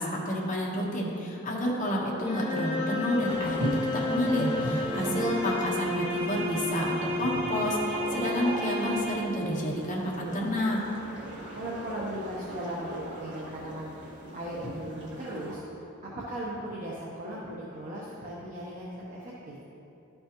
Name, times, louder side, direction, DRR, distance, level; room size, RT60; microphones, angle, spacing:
voice 1, 0.0-10.8, equal, 35° left, -5 dB, 1.2 m, -29 dB
sound 1, 2.2-9.5, left 1 dB, 10° right, 1.4 m, -32 dB
sound 2, 3.2-15.6, right 1 dB, 55° right, 1.8 m, -38 dB
voice 2, 4.5-5.3 11.5-13.9 14.3-19.6, right 1 dB, 35° right, -6 dB, 0.9 m, -38 dB
12.0 x 5.4 x 3.0 m, 2.9 s
head